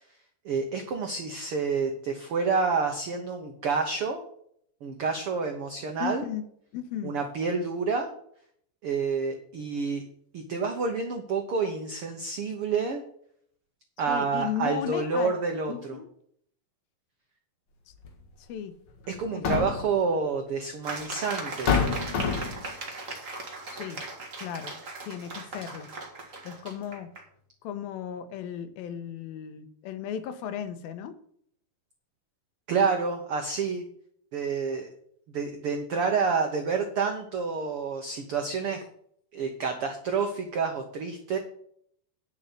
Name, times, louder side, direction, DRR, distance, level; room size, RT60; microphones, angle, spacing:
voice 1, 0.4-4.2 4.8-6.3 7.0-8.1 8.8-10.0 10.3-13.0 14.0-16.0 19.1-21.7 32.7-33.8 34.3-34.9 35.3-38.8 39.3-41.4, right 5 dB, 85° right, 4 dB, 1.2 m, -28 dB
voice 2, 6.0-6.4 6.7-7.2 14.1-15.3 15.7-16.1 17.9-18.0 18.4-18.8 19.3-19.7 23.7-24.0 24.4-24.7 25.0-25.9 26.4-27.1 27.6-31.2, left 9 dB, 85° left, 10 dB, 2.8 m, -35 dB
sound 1, 18.0-18.2 19.2-20.0 21.0-21.1 21.7-22.7, left 5 dB, 50° left, 1.7 m, -26 dB
sound 2, 20.8-27.3, right 3 dB, 35° right, 1.3 m, -38 dB
10.5 x 5.5 x 8.2 m, 0.65 s
omnidirectional pair, 4.2 m